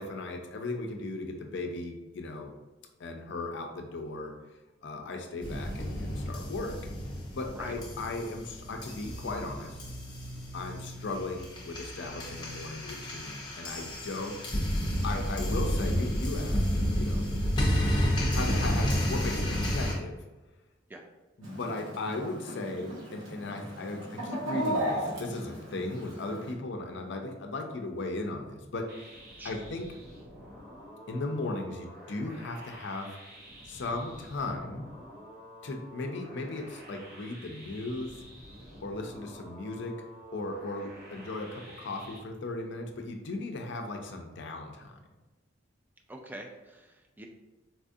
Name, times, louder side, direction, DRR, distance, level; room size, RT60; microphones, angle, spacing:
voice 1, 0.0-2.5 3.0-4.3 4.8-6.8 7.3-9.8 10.5-16.7 16.9-17.3 18.3-20.2 21.4-29.9 31.1-33.2 33.6-34.9 35.6-38.2 38.8-40.0 40.3-45.0, left 2 dB, 60° left, 3 dB, 0.5 m, -37 dB
sound 1, 5.4-19.9, equal, 20° left, 0.7 m, -31 dB
Chicken rooster, 21.4-26.5, right 1 dB, 80° right, 1.1 m, -36 dB
sound 2, 28.9-42.2, equal, 50° right, 1.0 m, -49 dB
voice 2, 46.1-47.3, right 1 dB, 10° right, 2 dB, 0.3 m, -45 dB
4.1 x 2.4 x 2.6 m, 1.2 s
head